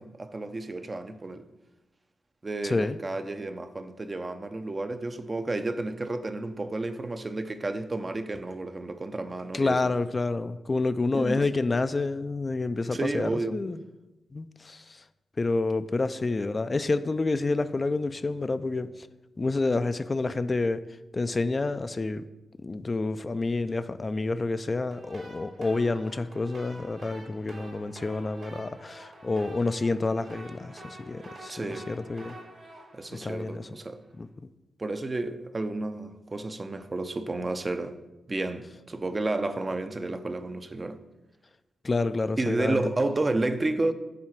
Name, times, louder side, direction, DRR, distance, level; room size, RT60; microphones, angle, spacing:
voice 1, 0.0-1.4 2.4-9.9 11.1-11.5 12.9-13.6 31.5-31.9 32.9-34.0 34.8-38.0 38.3-41.0 42.4-43.9, right 2 dB, 35° right, 0.6 m, -31 dB
voice 2, 2.6-3.0 9.5-13.8 14.3-15.0 15.4-19.1 19.4-20.8 21.1-22.2 22.6-32.4 33.1-33.7 34.2-34.3 41.8-42.8, left 3 dB, 35° left, 0.3 m, -28 dB
sound 1, 24.9-34.0, right 1 dB, 70° right, 2.6 m, -48 dB
7.6 x 3.7 x 5.8 m
cardioid pair, 60°, 0 cm